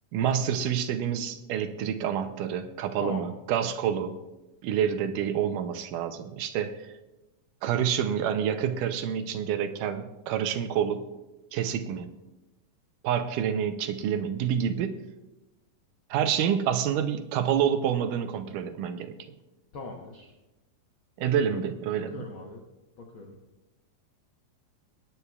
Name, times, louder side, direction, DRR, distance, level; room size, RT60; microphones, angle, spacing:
voice 1, 0.1-4.2 4.6-6.9 7.6-11.0 11.5-12.1 13.0-14.9 16.1-19.2 21.2-22.3, right 8 dB, 80° right, 9 dB, 2.2 m, -28 dB
voice 2, 19.7-20.3 22.1-22.6 23.0-23.3, left 3 dB, 80° left, 1 dB, 1.1 m, -39 dB
23.0 x 9.7 x 2.3 m, 1.0 s
omnidirectional pair, 3.9 m